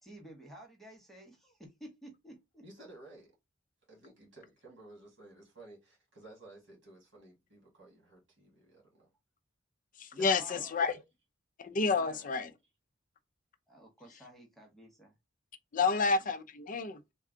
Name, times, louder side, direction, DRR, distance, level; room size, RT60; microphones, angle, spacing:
voice 1, 0.0-2.6 10.3-10.8 12.0-12.3 13.7-15.1 15.8-16.1, right 1 dB, ahead, 0.9 m, -52 dB
voice 2, 2.6-3.3 3.9-9.1 10.1-10.3, right 2 dB, 65° right, 1.8 m, -54 dB
voice 3, 10.0-10.9 11.6-12.5 15.7-17.0, left 4 dB, 40° left, 0.5 m, -29 dB
3.6 x 2.3 x 3.6 m
head